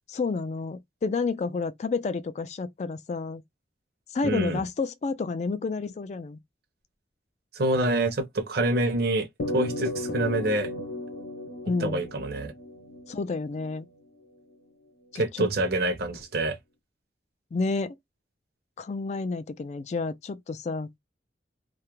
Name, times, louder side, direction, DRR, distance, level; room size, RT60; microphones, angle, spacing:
voice 1, 0.1-3.4 4.1-6.4 11.7-12.1 13.1-13.9 15.1-15.5 17.5-18.0 18.8-20.9, left 4 dB, 40° left, 0.3 m, -30 dB
voice 2, 4.2-4.6 7.5-9.3 9.5-10.7 11.8-12.5 15.1-16.6, right 1 dB, 55° right, 0.6 m, -26 dB
sound 1, 9.4-14.0, left 2 dB, 80° left, 0.6 m, -35 dB
2.3 x 2.0 x 2.9 m
head